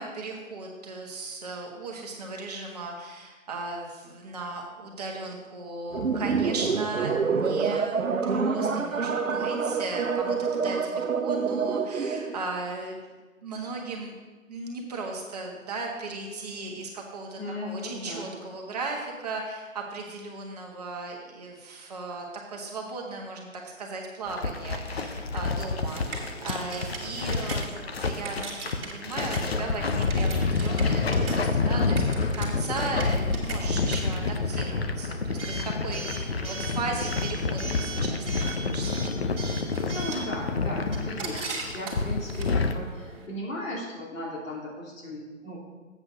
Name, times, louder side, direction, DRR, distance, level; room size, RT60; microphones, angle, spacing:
voice 1, 0.0-8.0 8.2-13.0 13.4-14.1 14.5-23.5 23.8-38.9, right 3 dB, 30° right, -1 dB, 1.4 m, -37 dB
sound 1, 5.9-12.4, right 5 dB, 70° right, 1.0 m, -27 dB
voice 2, 17.4-18.3 39.9-45.6, left 1 dB, 70° left, -4 dB, 2.9 m, -36 dB
sound 2, 24.3-42.8, left 4 dB, 50° left, 0.7 m, -28 dB
Coin (dropping) / Alarm, 25.8-43.3, right 3 dB, 45° right, 2.4 m, -40 dB
7.9 x 6.1 x 6.3 m, 1.3 s
figure-of-eight pair, 160°, 41 cm